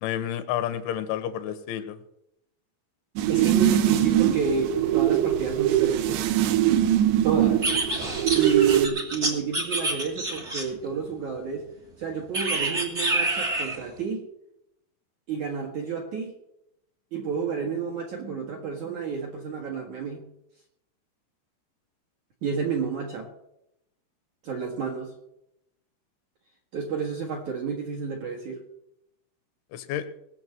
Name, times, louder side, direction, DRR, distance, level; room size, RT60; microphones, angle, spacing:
voice 1, 0.0-2.0 29.7-30.1, left 11 dB, 80° left, 11 dB, 3.4 m, -30 dB
sound 1, 3.2-8.9, right 12 dB, 75° right, 2.8 m, -22 dB
voice 2, 3.3-6.2 7.2-7.6 8.3-11.7 12.0-14.3 15.3-16.3 17.1-20.2 22.4-23.3 24.4-25.1 26.7-28.6, right 5 dB, 60° right, 1 dB, 2.1 m, -30 dB
sound 2, 7.6-10.9 12.3-13.8, right 2 dB, 40° right, 1.0 m, -27 dB
19.5 x 6.6 x 7.7 m, 0.80 s
omnidirectional pair, 5.5 m